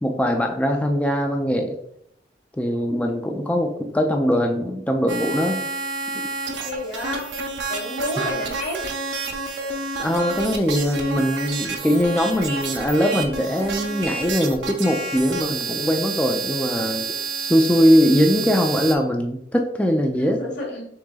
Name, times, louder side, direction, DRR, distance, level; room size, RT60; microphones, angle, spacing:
voice 1, 0.0-1.8 2.5-5.6 8.2-8.3 10.0-17.0 17.4-20.4, equal, 10° left, 3 dB, 0.3 m, -21 dB
sound 1, 5.1-18.9, right 4 dB, 85° right, 0.7 m, -29 dB
voice 2, 6.6-7.3 7.7-8.8 20.2-20.9, left 1 dB, 85° left, -1 dB, 1.6 m, -30 dB
6.0 x 3.6 x 2.3 m, 0.72 s
head